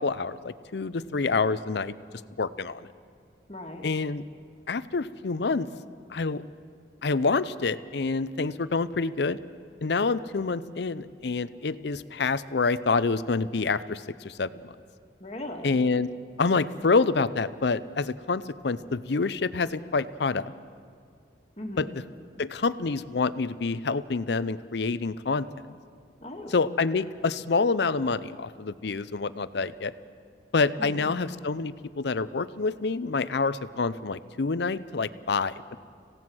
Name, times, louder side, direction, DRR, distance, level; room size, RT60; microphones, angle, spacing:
voice 1, 0.0-1.9 2.4-2.9 3.8-4.2 4.7-5.7 6.1-6.4 7.0-9.4 9.8-14.7 15.6-16.1 16.4-20.5 21.8-21.9 22.4-25.5 26.5-29.9 30.5-35.7, left 4 dB, 65° left, 16 dB, 0.6 m, -27 dB
voice 2, 3.5-3.8 15.2-15.8 21.6-21.9 26.2-26.5 30.8-31.2, left 1 dB, 35° left, 2 dB, 1.8 m, -38 dB
26.0 x 16.5 x 6.2 m, 2.1 s
head